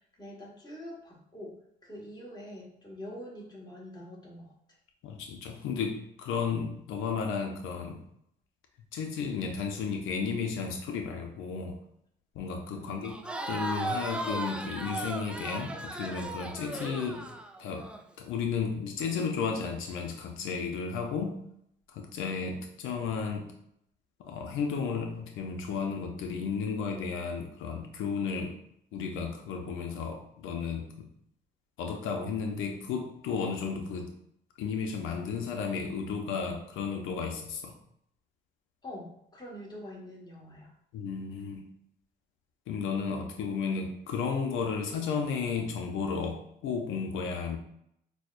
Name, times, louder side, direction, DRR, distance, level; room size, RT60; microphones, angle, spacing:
voice 1, 0.0-4.5 12.7-12.9 38.8-40.7, left 1 dB, 20° left, -3 dB, 1.3 m, -45 dB
voice 2, 5.0-8.1 8.9-11.8 12.4-13.2 13.5-17.3 17.6-21.4 21.9-23.5 24.2-28.6 28.9-31.1 31.8-34.1 34.6-37.7 40.9-41.7 42.7-47.6, left 5 dB, 90° left, 3 dB, 0.5 m, -33 dB
Crowd, 13.0-18.0, right 2 dB, 5° right, 0.3 m, -36 dB
6.2 x 2.1 x 2.4 m, 0.74 s
cardioid pair, 90°, 20 cm